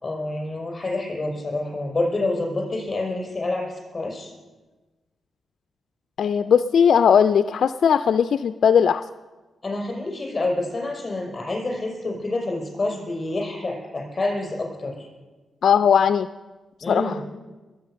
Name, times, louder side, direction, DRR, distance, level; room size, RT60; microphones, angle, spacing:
voice 1, 0.0-4.3 9.6-15.1 16.8-17.2, left 2 dB, 35° left, 0 dB, 5.8 m, -27 dB
voice 2, 6.2-9.0 15.6-16.3 16.9-17.2, left 7 dB, 70° left, 11 dB, 0.4 m, -18 dB
21.5 x 8.3 x 6.4 m, 1.2 s
cardioid pair, 95°, 0 cm